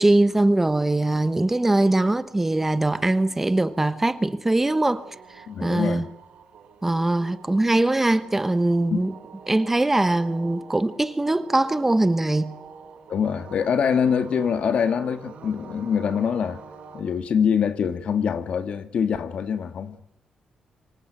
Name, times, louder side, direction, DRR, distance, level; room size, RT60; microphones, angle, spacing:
voice 1, 0.0-6.1 6.8-9.1 9.5-12.6, right 2 dB, 15° right, 1.1 m, -22 dB
sound 1, 0.6-17.0, right 5 dB, 70° right, 6.2 m, -46 dB
voice 2, 5.5-6.1 8.9-9.0 13.1-16.6 16.9-20.0, left 7 dB, 60° left, 2.2 m, -24 dB
25.5 x 23.5 x 9.0 m
cardioid pair, 120°, 2 cm